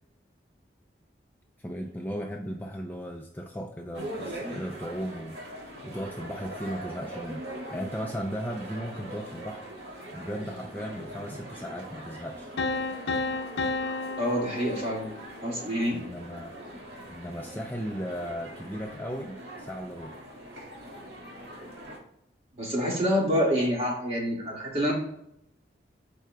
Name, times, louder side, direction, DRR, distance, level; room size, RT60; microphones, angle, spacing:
voice 1, 1.6-5.4 5.8-7.4 7.7-12.5 15.9-16.5 17.1-20.2, equal, 10° left, 2 dB, 0.4 m, -36 dB
sound 1, 3.9-22.0, right 1 dB, 75° right, 2.1 m, -42 dB
sound 2, 12.6-15.5, left 3 dB, 80° left, 0.6 m, -32 dB
voice 2, 14.2-15.1 15.4-16.0 22.6-24.9, equal, 35° right, -2 dB, 1.9 m, -27 dB
12.0 x 4.6 x 2.3 m, 0.76 s
head